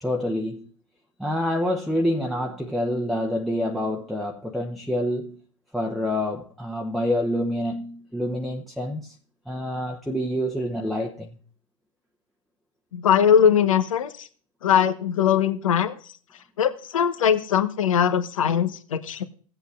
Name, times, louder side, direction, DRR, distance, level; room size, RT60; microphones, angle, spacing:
voice 1, 0.0-0.7 1.2-5.4 5.7-9.1 9.5-11.4, left 1 dB, ahead, 0.9 m, -27 dB
voice 2, 12.9-14.3 14.6-16.0 16.6-19.2, left 8 dB, 75° left, 1.1 m, -21 dB
17.0 x 8.1 x 2.4 m
hypercardioid pair, 105°, 17 cm